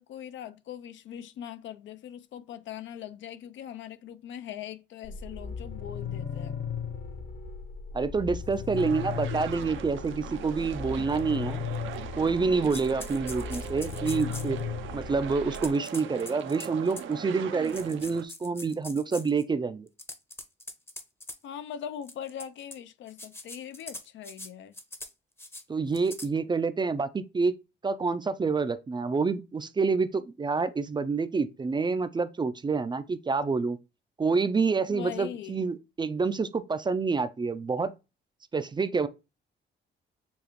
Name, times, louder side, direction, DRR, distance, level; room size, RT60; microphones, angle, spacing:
voice 1, 0.0-6.6 21.4-24.7 34.9-35.6, left 9 dB, 70° left, 0.5 m, -41 dB
sound 1, 5.0-15.7, left 6 dB, 45° left, 0.8 m, -37 dB
voice 2, 7.9-11.6 12.2-14.6 14.9-19.9 25.7-27.5 27.8-33.8 34.2-37.9 38.5-39.1, right 4 dB, 20° right, 0.4 m, -28 dB
sound 2, 8.8-8.9 9.5-9.6 10.1-10.2 11.1-11.2 11.7-12.3 12.6-14.6 15.5-17.1 17.6-19.4 19.9-21.4 22.0-22.8 23.1-24.5 24.7-25.1 25.4-25.6 25.9-26.3, left 2 dB, 10° left, 0.7 m, -43 dB
sound 3, 8.8-18.2, right 10 dB, 75° right, 0.7 m, -40 dB
6.9 x 2.4 x 3.0 m
cardioid pair, 90°, 20 cm